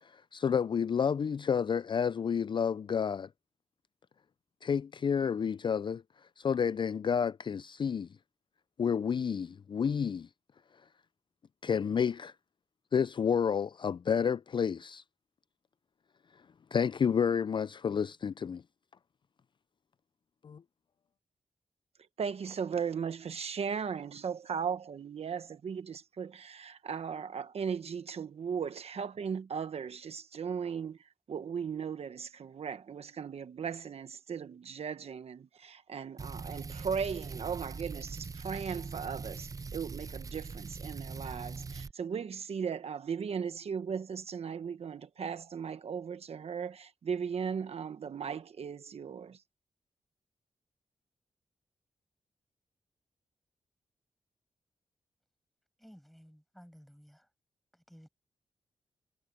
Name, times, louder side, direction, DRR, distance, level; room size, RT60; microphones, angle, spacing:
voice 1, 0.0-3.3 4.6-6.0 6.4-8.1 8.8-10.3 11.6-12.3 12.9-15.0 16.7-18.6 20.4-20.6, left 7 dB, 45° left, 0.4 m, -30 dB
voice 2, 22.2-49.4, right 6 dB, 65° right, 1.1 m, -37 dB
sound 1, 36.2-41.9, right 4 dB, 30° right, 0.5 m, -42 dB
voice 3, 55.8-57.3 57.7-58.1, equal, ahead, 7.8 m, -56 dB
cardioid pair, 65°, 11 cm